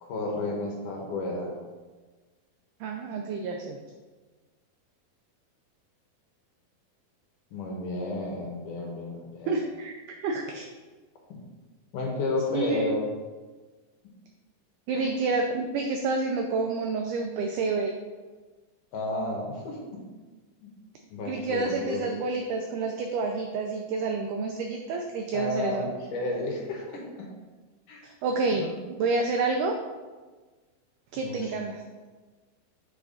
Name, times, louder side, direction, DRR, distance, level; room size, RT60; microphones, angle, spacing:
voice 1, 0.0-1.5 7.5-9.6 11.3-11.4 11.9-13.1 14.9-15.1 18.9-20.0 20.6-20.7 21.1-22.0 25.3-27.3 27.9-28.0 28.5-28.8 31.1-31.6, left 2 dB, 65° left, -1 dB, 2.5 m, -32 dB
voice 2, 2.8-3.8 9.5-10.7 12.5-12.9 14.9-17.9 21.3-25.9 28.0-28.7 29.0-29.8 31.1-31.8, right 3 dB, 90° right, 3 dB, 1.8 m, -29 dB
9.0 x 4.5 x 3.9 m, 1.3 s
omnidirectional pair, 4.4 m